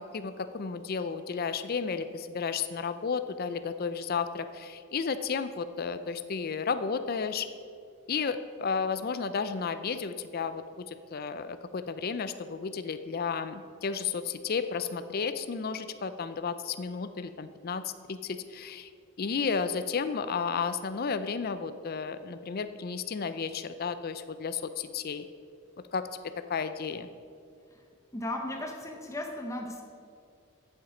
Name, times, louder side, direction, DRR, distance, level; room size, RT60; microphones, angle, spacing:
voice 1, 0.0-7.5 8.1-18.9 19.2-25.2 25.9-26.1 26.5-27.1, left 5 dB, 45° left, 11 dB, 0.4 m, -33 dB
voice 2, 28.1-29.8, left 1 dB, 15° left, 2 dB, 0.7 m, -36 dB
12.5 x 7.2 x 5.0 m, 2.4 s
head